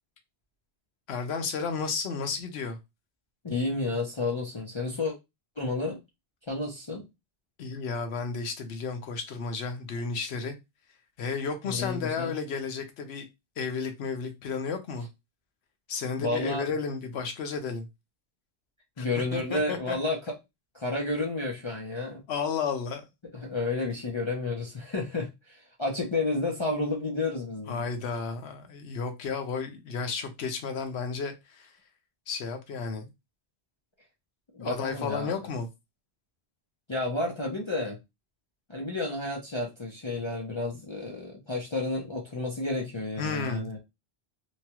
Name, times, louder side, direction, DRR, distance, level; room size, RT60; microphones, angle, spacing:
voice 1, 1.1-2.8 7.6-10.5 11.2-13.2 13.6-15.1 15.9-17.9 19.0-19.1 19.3-20.0 22.3-23.1 27.7-31.7 32.3-33.1 34.6-35.7 43.2-43.8, left 5 dB, 75° left, 0.9 m, -32 dB
voice 2, 3.4-5.1 5.6-6.0 6.5-7.1 11.6-12.4 16.2-16.7 19.0-20.3 20.7-22.2 23.4-27.8 34.5-35.3 36.9-38.0 38.7-43.8, left 2 dB, 35° left, 0.5 m, -31 dB
2.9 x 2.3 x 2.8 m
omnidirectional pair, 1.1 m